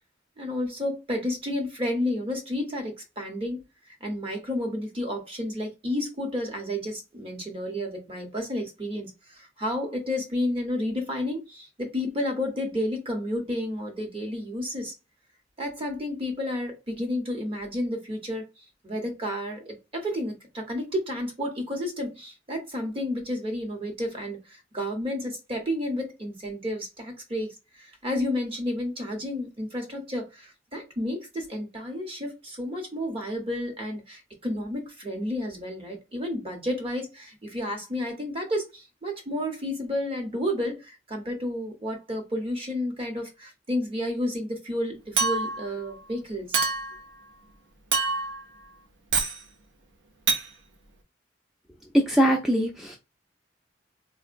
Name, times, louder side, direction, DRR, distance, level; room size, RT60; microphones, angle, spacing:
voice 1, 0.4-3.6 4.0-14.9 15.6-18.5 18.8-27.5 27.8-46.6, left 1 dB, 30° right, 0.9 m, -31 dB
Chink clink, 45.2-45.7 46.5-47.0 47.9-48.4 49.1-49.4 50.3-50.5, right 4 dB, 70° right, 0.6 m, -25 dB
voice 2, 51.9-53.0, equal, ahead, 0.4 m, -22 dB
3.7 x 2.1 x 2.5 m
head